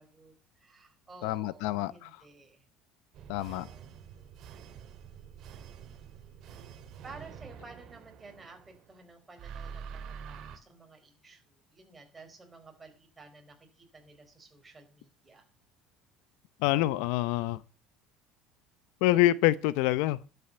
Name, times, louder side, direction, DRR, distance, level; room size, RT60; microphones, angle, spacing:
voice 1, 0.0-2.6 3.3-3.9 7.0-15.4, right 3 dB, 15° right, 4.1 m, -53 dB
voice 2, 1.2-2.1 3.3-3.7 16.6-17.6 19.0-20.2, left 16 dB, 75° left, 0.7 m, -26 dB
sound 1, 3.1-8.9 9.4-10.6, right 7 dB, 50° right, 2.3 m, -47 dB
11.5 x 8.1 x 6.8 m
cardioid pair, 135°, 0 cm